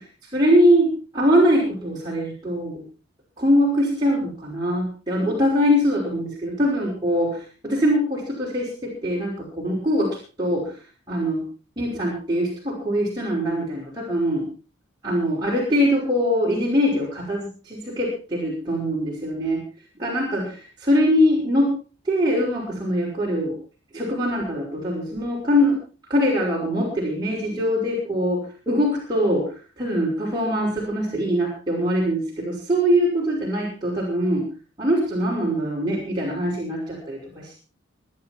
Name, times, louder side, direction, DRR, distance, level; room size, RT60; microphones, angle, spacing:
voice 1, 0.3-2.8 3.4-10.8 11.1-11.5 11.8-14.5 15.0-19.6 20.0-20.5 20.8-21.7 22.0-23.6 23.9-25.8 26.1-34.5 34.8-37.6, equal, 20° right, -5 dB, 5.6 m, -22 dB
25.0 x 9.8 x 4.5 m, 0.37 s
head